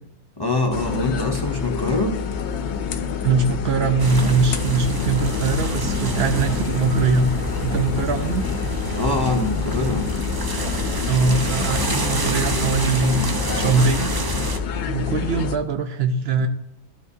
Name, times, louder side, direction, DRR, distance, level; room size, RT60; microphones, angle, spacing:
voice 1, 0.4-2.2 8.9-10.1, left 2 dB, 25° left, 2 dB, 0.5 m, -24 dB
sound 1, 0.7-15.6, left 7 dB, 70° left, 0.8 m, -27 dB
voice 2, 3.2-7.3 7.6-8.5 11.0-13.3 13.5-14.1 14.8-16.5, right 4 dB, 65° right, 8 dB, 0.8 m, -21 dB
sound 2, 4.0-14.6, right 1 dB, 35° right, 0.3 m, -28 dB
13.0 x 4.9 x 2.7 m, 0.83 s
omnidirectional pair, 1.2 m